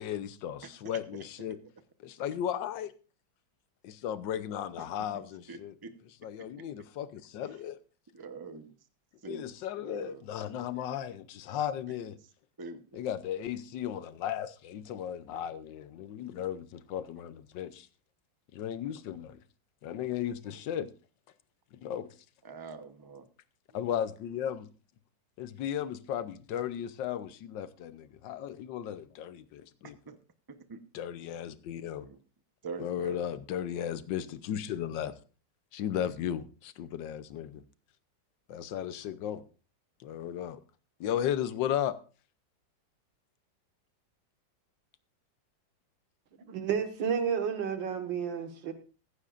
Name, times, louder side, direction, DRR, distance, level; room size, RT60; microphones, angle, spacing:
voice 1, 0.0-1.6 2.0-2.9 3.8-5.7 6.2-7.8 9.2-12.2 12.9-17.9 18.5-19.4 19.8-20.9 21.8-22.1 23.7-24.7 25.4-30.0 30.9-32.1 32.8-35.1 35.7-37.6 38.5-39.4 40.0-40.6 41.0-42.0, left 10 dB, 75° left, 13 dB, 1.5 m, -35 dB
voice 2, 5.5-5.9 8.1-8.7 9.2-9.5 9.8-10.2 12.6-13.0 22.4-23.3 30.1-30.2 30.7-30.8 32.0-32.2 32.6-33.3, right 4 dB, 20° right, 9 dB, 0.6 m, -44 dB
voice 3, 46.5-48.7, right 7 dB, 80° right, 7 dB, 2.3 m, -31 dB
15.0 x 15.0 x 2.5 m, 0.36 s
omnidirectional pair, 2.0 m